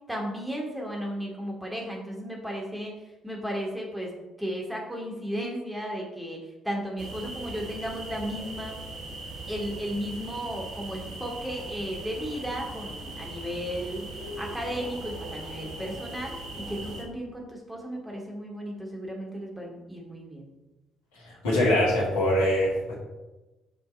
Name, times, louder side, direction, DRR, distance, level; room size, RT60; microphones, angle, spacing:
voice 1, 0.0-3.0 3.2-8.8 9.5-20.5, equal, 5° right, -1 dB, 2.4 m, -35 dB
sound 1, 7.0-17.0, right 2 dB, 60° right, 1.6 m, -39 dB
voice 2, 21.2-22.9, left 1 dB, 70° left, -5 dB, 2.6 m, -23 dB
7.7 x 6.1 x 4.4 m, 1.1 s
figure-of-eight pair, 45°, 0 cm